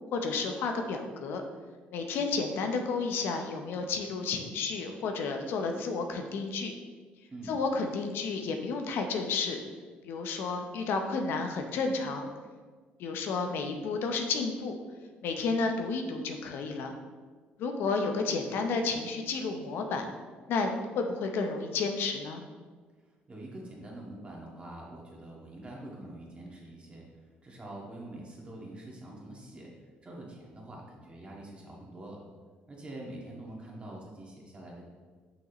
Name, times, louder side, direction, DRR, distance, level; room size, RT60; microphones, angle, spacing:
voice 1, 0.1-1.4 1.9-6.7 7.5-9.6 10.0-12.3 13.0-14.7 15.2-16.9 17.6-20.1 20.5-22.4, left 4 dB, 75° left, 4 dB, 0.7 m, -31 dB
voice 2, 7.3-7.6 23.3-32.2 32.7-34.8, right 1 dB, 30° right, -3 dB, 1.9 m, -45 dB
6.3 x 6.0 x 3.0 m, 1.5 s
cardioid pair, 85°, 4 cm